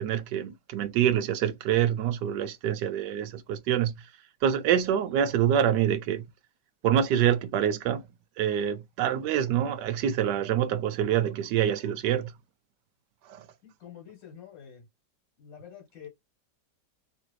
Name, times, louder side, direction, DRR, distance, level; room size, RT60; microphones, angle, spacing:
voice 1, 0.0-3.9 4.4-6.2 6.8-8.0 8.4-12.3 13.3-13.5, right 9 dB, 75° right, 1.2 m, -26 dB
voice 2, 13.6-14.9 15.4-16.1, left 8 dB, 85° left, 2.2 m, -47 dB
3.7 x 2.6 x 3.1 m
omnidirectional pair, 1.9 m